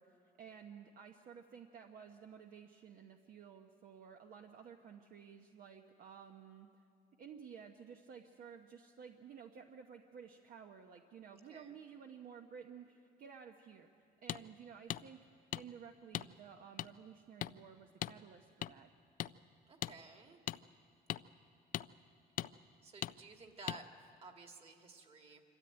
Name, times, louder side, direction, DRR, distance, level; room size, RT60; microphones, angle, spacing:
voice 1, 0.0-6.7 7.2-15.2 15.5-18.9, right 7 dB, 55° right, 4 dB, 1.0 m, -54 dB
voice 2, 11.3-11.8 19.7-20.4 22.8-25.4, right 4 dB, 35° right, 4 dB, 2.2 m, -54 dB
sound 1, 14.3-14.4 14.9-15.0 15.5-15.6 16.1-16.3 16.8-16.9 17.4-17.5 18.0-18.2 18.6-18.7 19.2-19.3 19.8-19.9 20.5-20.6 21.1-21.2 21.7-21.9 22.4-22.5 23.0-23.1 23.7-23.8, left 13 dB, 55° left, 0.4 m, -38 dB
25.5 x 13.0 x 9.0 m, 2.5 s
cardioid pair, 110°, 17 cm